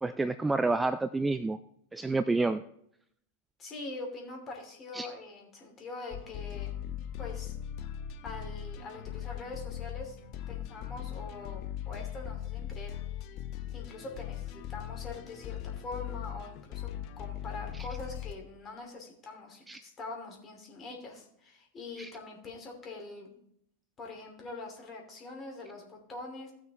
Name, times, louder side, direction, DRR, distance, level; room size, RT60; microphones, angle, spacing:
voice 1, 0.0-1.6 1.9-2.6 4.9-5.1 19.7-19.8 22.0-22.1, right 3 dB, 10° right, 12 dB, 0.3 m, -29 dB
voice 2, 3.6-6.8 7.2-7.5 8.2-10.2 10.5-13.0 13.7-16.9 17.2-23.4 24.0-26.5, left 3 dB, 25° left, 1 dB, 2.6 m, -43 dB
sound 1, 6.1-18.3, left 11 dB, 40° left, 0.7 m, -39 dB
16.5 x 6.1 x 2.9 m, 0.70 s
figure-of-eight pair, 90°, 0 cm